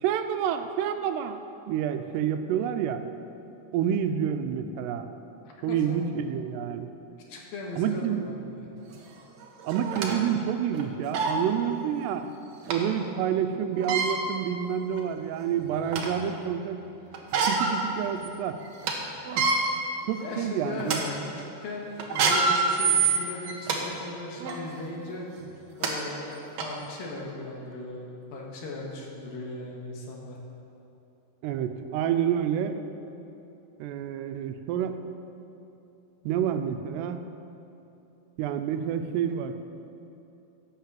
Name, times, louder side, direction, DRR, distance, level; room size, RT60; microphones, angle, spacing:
voice 1, 0.0-1.4 1.7-3.1 3.7-5.1 5.6-6.9 7.8-8.2 9.6-12.3 12.7-16.8 17.4-18.6 19.4-19.5 20.1-21.0 31.4-32.8 33.8-35.0 36.2-37.3 38.4-39.5, right 9 dB, 90° right, 8 dB, 2.8 m, -28 dB
voice 2, 7.3-8.7 20.2-25.3 25.8-30.4, left 2 dB, 70° left, -1 dB, 3.0 m, -38 dB
sound 1, 8.9-9.0 9.7-10.1 10.7-10.8 11.1-11.4 12.7-12.8 13.7-14.1 14.9-15.0 15.5-16.2 17.1-17.8 18.2-18.3 18.6-18.9 19.2-19.6 20.2-20.4 20.8-21.0 22.0-23.8 24.4-24.6 25.4-25.5 25.8-25.9 26.6-26.7, right 5 dB, 70° right, 1.6 m, -25 dB
11.5 x 8.5 x 7.5 m, 2.8 s
omnidirectional pair, 4.7 m